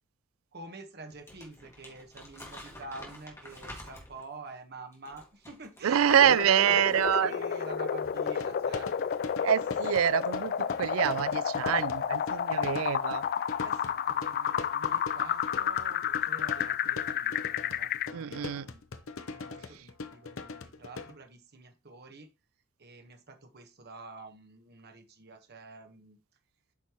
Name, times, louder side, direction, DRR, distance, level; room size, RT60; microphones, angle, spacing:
voice 1, 0.5-8.9 13.6-18.8 19.3-22.3 22.8-26.2, right 2 dB, 50° right, 1.3 m, -47 dB
Crumpling crinkling, 1.1-4.3 4.9-7.2 7.5-7.7, left 1 dB, 15° left, 2.1 m, -49 dB
voice 2, 5.8-7.3 9.4-13.2 18.1-18.7, right 9 dB, 80° right, 0.4 m, -26 dB
sound 1, 6.1-18.1, left 8 dB, 45° left, 0.3 m, -31 dB
sound 2, 8.0-21.1, left 4 dB, 75° left, 0.8 m, -42 dB
8.4 x 5.3 x 3.0 m
head